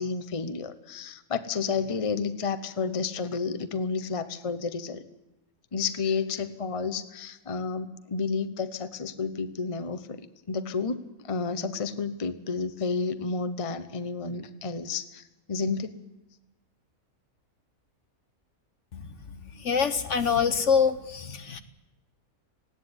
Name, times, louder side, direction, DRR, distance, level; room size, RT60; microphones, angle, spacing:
voice 1, 0.0-5.0 5.7-10.2 10.5-11.0 11.2-15.2 15.5-15.9, left 5 dB, 25° left, 10 dB, 0.9 m, -31 dB
voice 2, 19.6-21.6, left 6 dB, 55° left, 9 dB, 1.3 m, -25 dB
19.0 x 16.0 x 9.8 m, 0.98 s
omnidirectional pair, 1.5 m